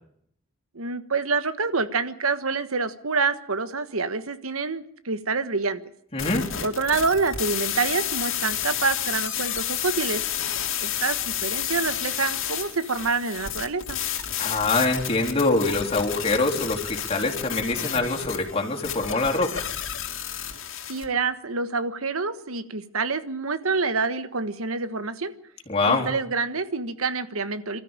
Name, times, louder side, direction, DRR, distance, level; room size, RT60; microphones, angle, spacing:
voice 1, 0.7-5.8 6.6-10.2 10.8-14.0 20.9-25.3 25.9-27.8, right 4 dB, 90° right, 12 dB, 1.4 m, -27 dB
voice 2, 6.1-6.5 14.4-19.7 25.7-26.1, left 3 dB, 30° left, 0 dB, 3.6 m, -24 dB
sound 1, 6.2-21.0, left 10 dB, 70° left, 2.6 m, -31 dB
25.0 x 13.5 x 8.9 m, 0.69 s
head